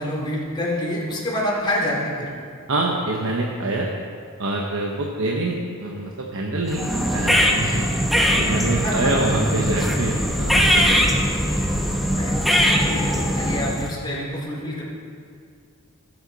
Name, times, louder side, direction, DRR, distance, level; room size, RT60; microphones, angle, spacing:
voice 1, 0.0-2.3 8.8-9.1 12.1-14.8, left 1 dB, 20° left, -5 dB, 2.7 m, -27 dB
voice 2, 2.7-3.9 4.4-7.9 8.4-11.3, right 2 dB, 65° right, -1 dB, 1.0 m, -25 dB
sound 1, 6.7-13.9, equal, ahead, 0.9 m, -21 dB
17.0 x 7.9 x 4.0 m, 2.3 s
head